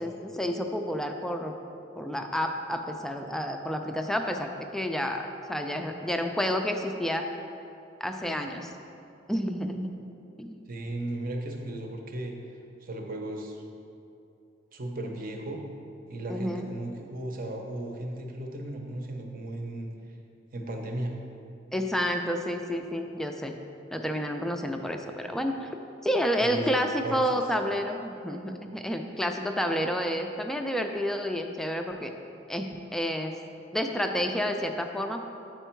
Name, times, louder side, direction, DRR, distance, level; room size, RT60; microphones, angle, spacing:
voice 1, 0.0-1.5 2.0-7.3 8.0-8.7 9.3-9.9 10.4-10.6 16.3-16.7 21.7-23.5 23.9-25.7 26.0-32.1 32.5-33.4 33.7-35.2, equal, ahead, 4 dB, 0.3 m, -30 dB
voice 2, 10.7-12.3 12.8-13.6 14.7-15.6 16.1-19.9 20.5-21.1 26.4-27.4, right 1 dB, 50° right, 2 dB, 0.7 m, -36 dB
8.0 x 4.4 x 4.4 m, 2.7 s
head